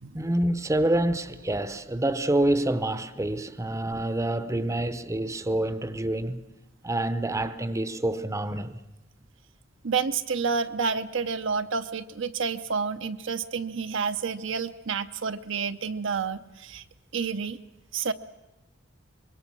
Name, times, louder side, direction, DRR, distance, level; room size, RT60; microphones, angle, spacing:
voice 1, 0.1-6.4 6.8-8.8, right 1 dB, 15° right, 0.7 m, -27 dB
voice 2, 9.8-16.8 17.1-17.6 17.9-18.1, right 5 dB, 70° right, 0.8 m, -29 dB
25.0 x 22.0 x 6.2 m
head